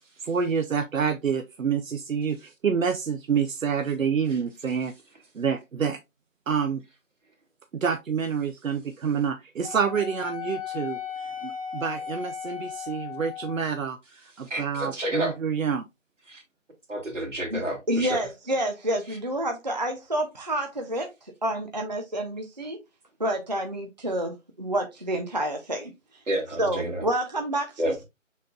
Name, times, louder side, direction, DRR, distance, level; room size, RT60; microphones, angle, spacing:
voice 1, 0.2-4.9 5.3-6.0 6.5-6.8 7.7-15.9, right 6 dB, 85° right, 0.7 m, -28 dB
Wind instrument woodwind instrument, 9.6-13.8, left 8 dB, 30° left, 0.6 m, -36 dB
voice 2, 14.5-15.3 16.3-16.4 16.9-18.2 26.3-27.0 27.8-27.9, right 1 dB, 65° right, 2.4 m, -29 dB
voice 3, 17.5-22.8 23.2-26.2 26.6-28.0, right 1 dB, 35° right, 0.5 m, -29 dB
5.4 x 4.2 x 2.3 m
figure-of-eight pair, 165°, 39 cm